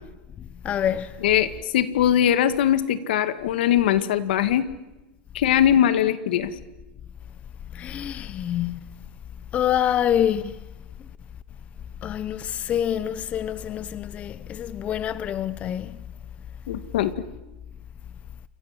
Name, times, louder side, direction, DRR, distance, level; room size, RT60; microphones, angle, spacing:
voice 1, 0.4-1.2 7.7-9.0 9.5-10.6 12.0-16.0, left 10 dB, 25° left, 0.8 m, -26 dB
voice 2, 1.2-4.7 5.3-6.5 16.7-17.1, left 10 dB, 75° left, 2.1 m, -21 dB
28.5 x 25.0 x 7.7 m
supercardioid pair, 150°, 5 cm